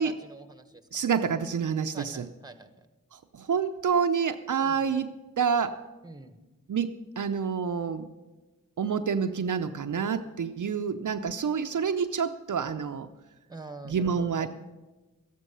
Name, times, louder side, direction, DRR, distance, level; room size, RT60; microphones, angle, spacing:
voice 1, 0.0-0.8 1.9-2.9 4.6-4.9 6.0-6.4 13.5-14.5, right 2 dB, 10° right, 10 dB, 1.2 m, -45 dB
voice 2, 0.9-2.3 3.1-5.8 6.7-8.1 8.8-13.1 13.9-14.5, right 6 dB, 65° right, 8 dB, 0.6 m, -28 dB
13.0 x 11.0 x 5.5 m, 1.2 s
cardioid pair, 40°, 34 cm